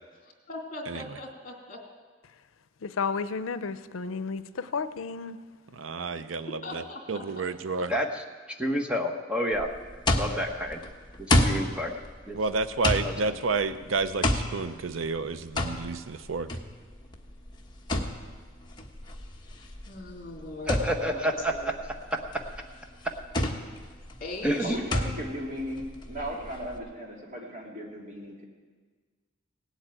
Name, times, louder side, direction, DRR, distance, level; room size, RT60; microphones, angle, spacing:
voice 1, 0.2-1.8 6.6-7.3 19.9-21.7 24.2-24.8, left 2 dB, 45° left, 1 dB, 2.7 m, -40 dB
voice 2, 2.8-5.4, left 5 dB, 85° left, 13 dB, 0.6 m, -32 dB
voice 3, 5.7-7.9 12.3-16.5, right 4 dB, 80° right, 12 dB, 0.6 m, -30 dB
voice 4, 7.9-8.2 8.6-9.7 10.2-10.8 11.2-11.9 12.3-12.4 13.0-13.4 20.7-21.5 24.4-24.7, equal, 5° right, 3 dB, 1.2 m, -29 dB
sound 1, 9.5-26.8, left 1 dB, 20° left, 1.2 m, -31 dB
voice 5, 24.6-28.4, equal, 40° right, -2 dB, 3.0 m, -36 dB
17.5 x 8.2 x 9.0 m, 1.5 s
head